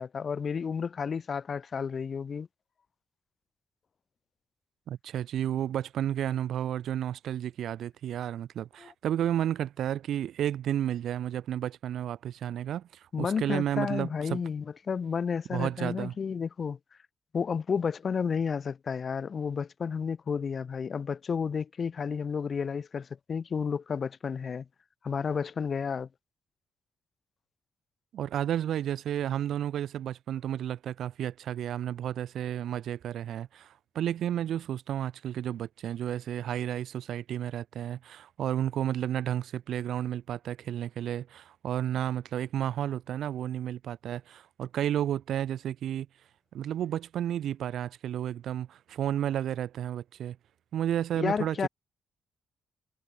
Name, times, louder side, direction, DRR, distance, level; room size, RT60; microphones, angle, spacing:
voice 1, 0.0-2.5 8.8-8.9 13.1-16.8 17.3-24.6 25.0-26.1 51.2-51.7, left 6 dB, 50° left, 1.1 m, -31 dB
voice 2, 4.9-14.4 15.5-16.1 28.1-46.1 46.5-50.4 50.7-51.7, right 10 dB, 75° right, 0.5 m, -32 dB
supercardioid pair, 60°, 0 cm